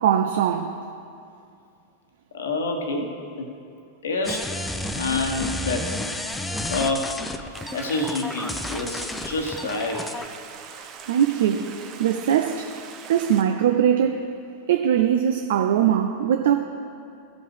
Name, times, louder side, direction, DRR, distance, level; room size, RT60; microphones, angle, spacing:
voice 1, 0.0-0.8 11.1-12.7 13.1-14.3 14.7-16.5, right 9 dB, 55° right, 0.4 m, -21 dB
voice 2, 2.3-3.1 3.4-3.5 4.0-4.5 4.9-5.9 6.2-6.4 6.7-7.2 7.7-10.0 11.7-11.8, left 3 dB, 65° left, 1.1 m, -27 dB
sound 1, 4.2-10.3, left 1 dB, 10° left, 0.5 m, -31 dB
Stream, 7.5-13.4, right 7 dB, 35° right, 0.8 m, -42 dB
15.5 x 5.4 x 4.8 m
figure-of-eight pair, 90°, 0 cm